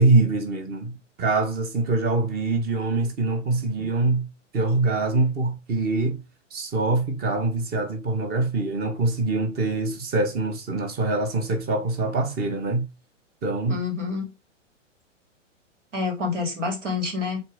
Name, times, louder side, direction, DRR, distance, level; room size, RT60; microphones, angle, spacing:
voice 1, 0.0-4.3 4.5-6.2 6.5-12.9 13.4-13.8, right 3 dB, 25° right, 1.8 m, -24 dB
voice 2, 13.7-14.3 15.9-17.4, left 4 dB, 70° right, 3.4 m, -27 dB
7.7 x 4.3 x 3.9 m
figure-of-eight pair, 110°, 37 cm